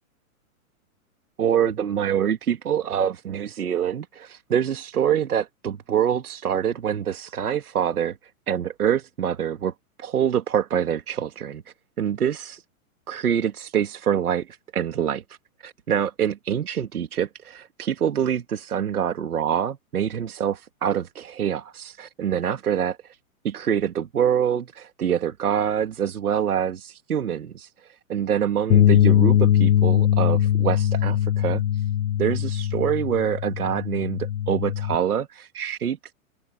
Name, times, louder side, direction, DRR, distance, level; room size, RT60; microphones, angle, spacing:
voice 1, 1.4-8.2 8.5-9.7 10.0-12.6 13.1-23.2 23.4-31.8 32.2-36.1, right 9 dB, 90° right, 2.6 m, -25 dB
sound 1, 28.7-35.0, left 11 dB, 85° left, 1.0 m, -21 dB
hypercardioid pair, 135°, 44 cm